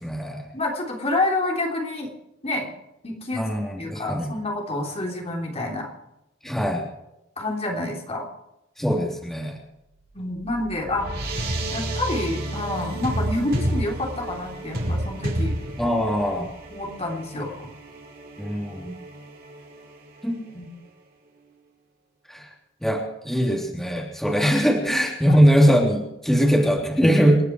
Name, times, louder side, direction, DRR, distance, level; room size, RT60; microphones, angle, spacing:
voice 1, 0.0-0.4 3.3-4.3 6.4-6.8 8.8-9.5 15.8-16.5 18.4-18.9 20.2-20.4 22.3-22.4 22.8-27.4, equal, ahead, -1 dB, 3.1 m, -21 dB
voice 2, 0.5-2.1 2.4-2.7 3.0-3.5 3.8-5.9 7.4-8.3 10.1-11.1 11.7-15.6 16.7-17.5 20.5-20.7 23.6-23.7 24.9-25.0, left 2 dB, 30° left, 0 dB, 3.5 m, -28 dB
sound 1, 9.9-20.7, right 1 dB, 55° right, 4.6 m, -31 dB
28.5 x 9.8 x 4.7 m, 0.89 s
head